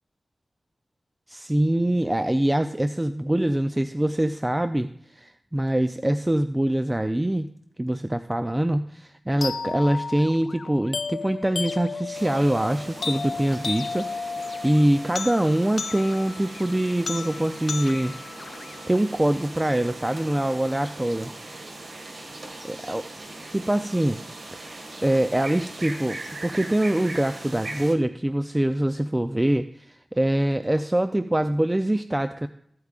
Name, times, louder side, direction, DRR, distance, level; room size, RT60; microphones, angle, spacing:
voice 1, 1.3-7.5 7.8-18.2 18.9-21.3 22.9-23.0 23.5-24.2 24.6-24.7 25.0-32.5, right 1 dB, 15° right, 9 dB, 0.4 m, -24 dB
sound 1, 9.4-19.4, left 4 dB, 80° left, 0.3 m, -34 dB
sound 2, 12.1-27.9, right 2 dB, 70° right, 1.7 m, -40 dB
15.0 x 8.2 x 2.4 m, 0.70 s
wide cardioid pair, 85°, 0 cm